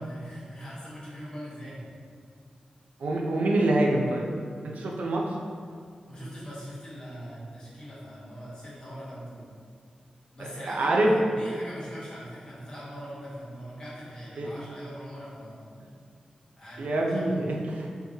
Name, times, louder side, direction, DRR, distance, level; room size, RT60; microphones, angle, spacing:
voice 1, 0.0-1.8 6.1-9.4 10.3-15.6 16.6-17.4, equal, 30° left, -9 dB, 1.4 m, -41 dB
voice 2, 3.0-4.3 4.6-5.2 10.4-11.1 14.4-14.5 16.8-17.9, right 1 dB, 85° right, -1 dB, 0.5 m, -25 dB
5.5 x 3.1 x 2.8 m, 2.1 s
wide cardioid pair, 170°, 2 cm